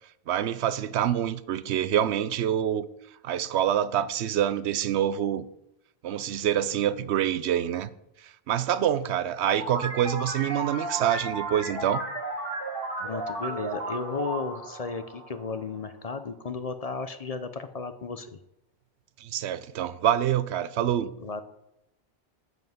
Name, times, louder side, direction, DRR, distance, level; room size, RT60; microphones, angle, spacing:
voice 1, 0.3-2.9 3.2-5.4 6.0-7.9 8.2-12.0 19.2-21.1, right 10 dB, 90° right, 0.9 m, -26 dB
sound 1, 9.6-15.8, right 2 dB, 60° right, 2.8 m, -34 dB
voice 2, 13.0-18.4 21.2-21.4, left 4 dB, 40° left, 0.7 m, -34 dB
9.2 x 5.7 x 7.8 m
omnidirectional pair, 1.1 m